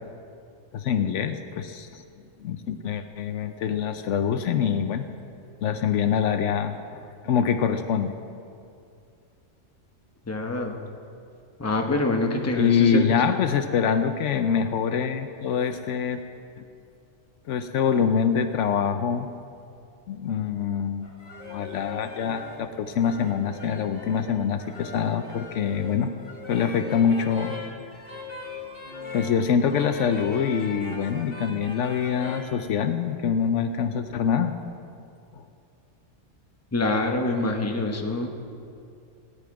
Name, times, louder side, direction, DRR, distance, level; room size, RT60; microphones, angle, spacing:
voice 1, 0.7-2.0 2.4-5.0 5.6-8.1 12.6-16.2 17.5-19.3 20.1-21.1 21.5-26.1 26.5-27.6 29.1-34.5 35.4-35.5, left 7 dB, 75° left, 9 dB, 0.9 m, -25 dB
voice 2, 10.3-10.8 11.6-13.0 36.7-38.3, left 2 dB, 15° left, 2 dB, 0.9 m, -25 dB
sound 1, 21.0-32.4, left 4 dB, 45° left, 2.3 m, -40 dB
17.0 x 10.0 x 4.7 m, 2.5 s
omnidirectional pair, 1.3 m